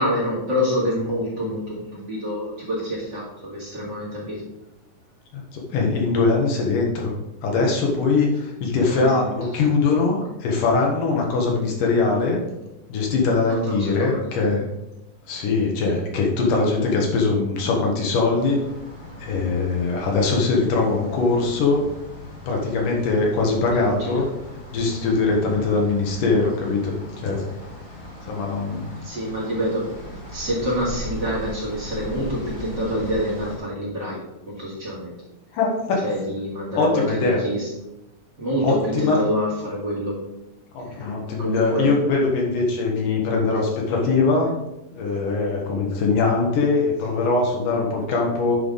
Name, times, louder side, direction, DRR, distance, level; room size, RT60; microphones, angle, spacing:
voice 1, 0.0-4.4 8.8-9.7 13.4-14.2 23.7-24.3 24.9-25.0 29.0-35.1 36.0-37.7 38.4-40.2 40.9-41.0 41.4-41.9, equal, 35° right, -5 dB, 2.6 m, -27 dB
voice 2, 5.7-7.1 7.4-12.4 12.9-14.6 15.3-18.6 19.2-21.8 22.5-24.3 24.7-26.9 27.2-27.5 28.3-28.9 35.5-36.0 36.8-37.4 38.6-39.2 40.7-44.6 44.9-48.6, left 3 dB, 70° left, 0 dB, 2.9 m, -21 dB
sound 1, 18.4-33.6, equal, 35° left, 0.7 m, -39 dB
9.6 x 5.6 x 4.1 m, 0.94 s
omnidirectional pair, 4.0 m